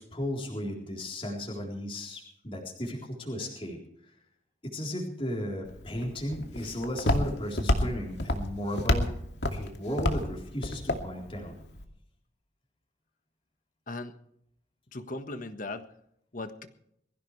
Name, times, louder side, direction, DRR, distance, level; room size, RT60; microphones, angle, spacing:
voice 1, 0.0-4.1 4.6-9.1 9.5-11.5, equal, 30° left, -1 dB, 3.9 m, -35 dB
Walk footsteps, 5.7-11.8, left 1 dB, 75° left, 2.4 m, -30 dB
voice 2, 14.9-15.9 16.3-16.7, left 2 dB, 50° left, 9 dB, 1.5 m, -38 dB
22.5 x 15.5 x 3.3 m, 0.72 s
head